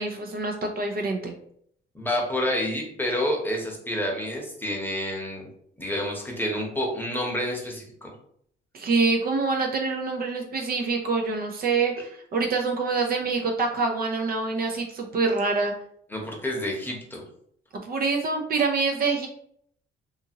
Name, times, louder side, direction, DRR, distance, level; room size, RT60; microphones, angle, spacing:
voice 1, 0.0-1.3 8.7-15.7 17.8-19.3, right 4 dB, 50° right, 2 dB, 0.5 m, -26 dB
voice 2, 1.9-5.5 5.8-8.1 16.1-17.2, left 1 dB, 10° left, -1 dB, 0.9 m, -29 dB
2.6 x 2.5 x 2.8 m, 0.67 s
cardioid pair, 90°, 20 cm